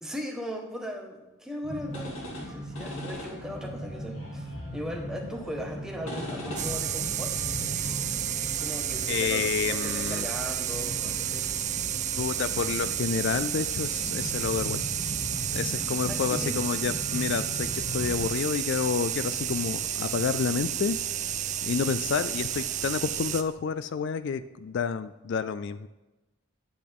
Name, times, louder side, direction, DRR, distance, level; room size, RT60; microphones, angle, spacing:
voice 1, 0.0-7.4 8.6-11.5 16.0-16.6, equal, 5° right, 1 dB, 1.2 m, -38 dB
sound 1, 1.6-18.3, equal, 85° left, 2.7 m, -39 dB
sound 2, 6.6-23.4, right 10 dB, 35° right, 0.5 m, -31 dB
voice 2, 9.1-10.3 12.2-14.8 15.5-21.0 21.6-25.9, left 6 dB, 55° left, 14 dB, 0.3 m, -29 dB
10.0 x 8.4 x 3.5 m, 1.1 s
head